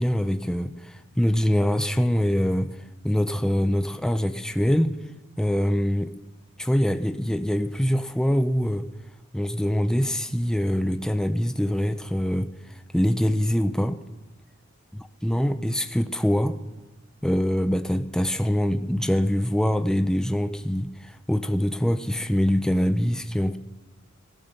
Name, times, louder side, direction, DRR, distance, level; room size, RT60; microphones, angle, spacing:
voice 1, 0.0-2.7 3.0-4.9 5.4-6.1 6.6-8.9 9.3-12.5 12.9-14.0 15.2-16.6 17.2-23.6, equal, 5° left, 8 dB, 0.5 m, -24 dB
16.0 x 12.5 x 6.5 m, 1.1 s
head